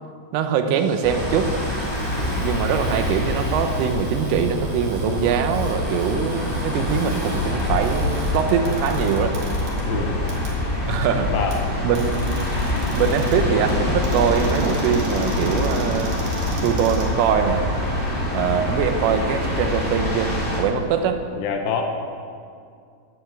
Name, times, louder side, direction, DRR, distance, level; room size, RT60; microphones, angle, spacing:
voice 1, 0.3-1.5 2.4-9.4 10.9-11.3 11.8-12.3 12.9-16.2 16.6-17.7 18.3-21.2, right 7 dB, 85° right, 7 dB, 3.5 m, -22 dB
Cupboard open or close, 0.7-17.7, right 2 dB, 50° right, 3.8 m, -42 dB
sound 1, 1.0-20.6, left 1 dB, 20° left, 1.5 m, -25 dB
voice 2, 2.2-2.5 9.9-10.2 11.3-11.6 21.4-21.8, left 6 dB, 80° left, 3 dB, 2.1 m, -26 dB
11.0 x 10.5 x 9.0 m, 2.3 s
omnidirectional pair, 5.7 m